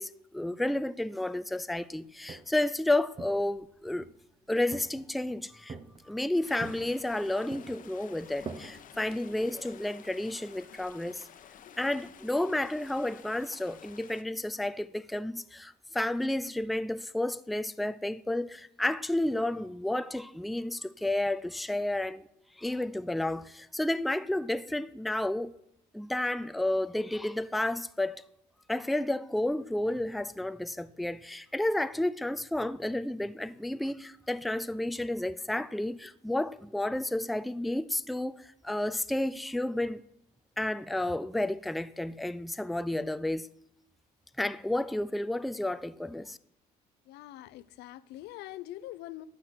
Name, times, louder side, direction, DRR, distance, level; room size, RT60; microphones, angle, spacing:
voice 1, 0.0-4.1 4.5-5.8 6.0-11.3 11.8-22.3 22.6-25.5 25.9-28.2 28.7-40.0 40.6-43.5 44.4-46.4, left 1 dB, ahead, 0.3 m, -31 dB
Walk footsteps, 2.0-2.7 3.1-4.2 4.7-5.3 5.7-6.2 6.6-7.2 7.5-9.7, right 4 dB, 30° right, 0.9 m, -45 dB
sound 1, 6.4-14.2, left 9 dB, 55° left, 0.9 m, -52 dB
voice 2, 47.1-49.3, left 15 dB, 85° left, 0.6 m, -44 dB
11.5 x 6.2 x 8.2 m
cardioid pair, 110°, 17 cm